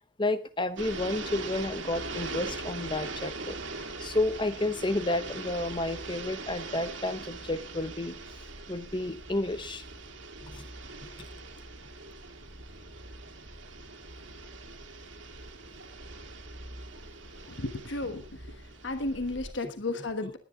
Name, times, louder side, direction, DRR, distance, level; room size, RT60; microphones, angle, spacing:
voice 1, 0.2-3.6 4.0-8.1 8.7-9.8 10.4-10.7 11.0-11.3 19.6-20.3, left 2 dB, 25° left, 13 dB, 0.9 m, -31 dB
sound 1, 0.8-19.5, right 3 dB, 70° right, 2.4 m, -41 dB
voice 2, 17.5-18.2 18.8-20.4, left 2 dB, 65° left, 8 dB, 1.3 m, -33 dB
18.0 x 11.0 x 3.8 m, 0.35 s
head